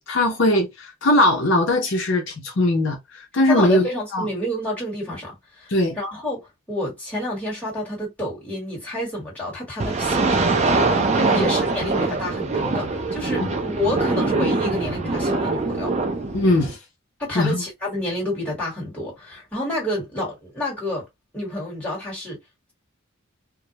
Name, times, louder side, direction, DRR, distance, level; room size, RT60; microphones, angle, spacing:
voice 1, 0.0-4.3 5.7-6.0 11.2-11.5 13.4-13.5 16.3-16.8 17.4-17.6, left 1 dB, 55° left, 0.6 m, -20 dB
voice 2, 3.5-10.8 11.0-15.9 17.2-21.0 21.3-22.4, left 1 dB, 5° left, 1.3 m, -29 dB
sound 1, 9.8-16.7, right 3 dB, 30° right, 0.4 m, -23 dB
2.2 x 2.0 x 2.8 m
head